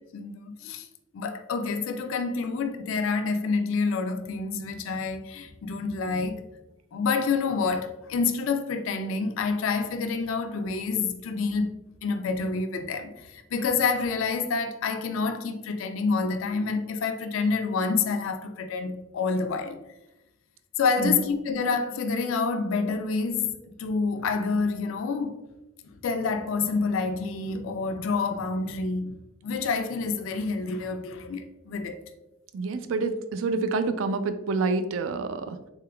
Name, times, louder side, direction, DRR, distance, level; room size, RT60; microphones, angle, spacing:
voice 1, 0.1-0.9 1.1-6.4 6.9-19.8 20.8-23.5 23.8-25.4 26.0-32.0, left 4 dB, 80° left, 0.4 m, -28 dB
voice 2, 32.5-35.6, right 3 dB, 75° right, 0.3 m, -27 dB
3.7 x 3.7 x 2.2 m
head